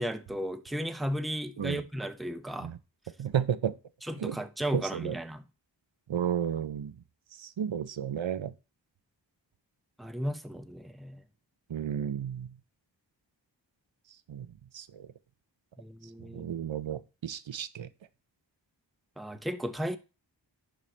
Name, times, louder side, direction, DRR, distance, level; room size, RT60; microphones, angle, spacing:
voice 1, 0.0-2.7 4.0-5.4 10.0-11.2 15.8-16.6 19.2-20.0, equal, ahead, 0.6 m, -35 dB
voice 2, 3.2-3.7 4.2-4.4 4.7-5.1 6.1-6.9 7.4-8.5 11.7-12.5 14.3-14.5 14.7-15.1 16.2-17.9, right 9 dB, 90° right, 0.6 m, -32 dB
11.0 x 4.2 x 3.2 m
wide cardioid pair, 50°, 44 cm